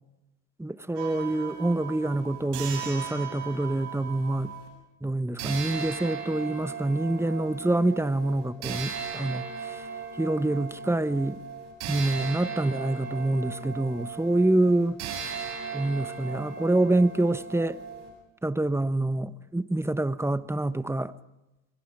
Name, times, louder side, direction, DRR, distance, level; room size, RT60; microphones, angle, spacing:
voice 1, 0.6-4.5 5.0-9.8 10.2-11.4 11.9-15.0 15.7-17.8 18.4-21.1, right 2 dB, 5° right, 1.2 m, -26 dB
sound 1, 1.0-4.7 5.4-18.1, right 6 dB, 85° right, 7.7 m, -37 dB
29.5 x 22.5 x 4.9 m
supercardioid pair, 70°, 39 cm